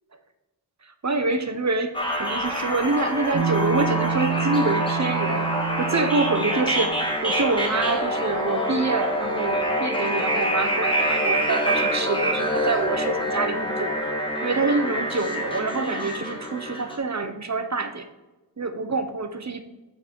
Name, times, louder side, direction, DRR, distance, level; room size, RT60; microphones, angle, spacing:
voice 1, 0.9-5.5 5.8-7.0 7.2-14.1 14.4-18.1 18.6-19.6, right 3 dB, 40° right, 7 dB, 1.0 m, -26 dB
sound 1, 1.9-17.0, equal, 10° left, 1.9 m, -26 dB
sound 2, 3.3-7.2, right 8 dB, 75° right, 0.9 m, -29 dB
8.5 x 4.1 x 5.3 m, 1.1 s
wide cardioid pair, 70°, 41 cm